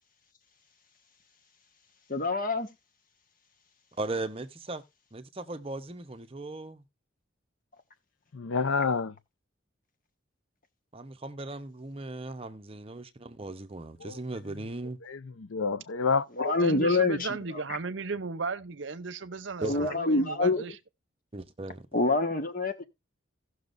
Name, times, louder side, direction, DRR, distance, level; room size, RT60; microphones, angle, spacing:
voice 1, 2.1-2.7 16.4-17.6 19.6-20.6 21.9-22.8, left 2 dB, 40° left, 1.4 m, -26 dB
voice 2, 4.0-4.8 5.1-6.8 10.9-15.0 19.6-19.9 21.3-21.9, right 2 dB, 30° right, 0.8 m, -37 dB
voice 3, 8.3-9.2 14.0-14.2 14.5-14.6 15.0-16.6, left 5 dB, 85° left, 0.6 m, -29 dB
voice 4, 16.6-20.7, right 4 dB, 65° right, 0.7 m, -35 dB
17.0 x 6.3 x 2.5 m
head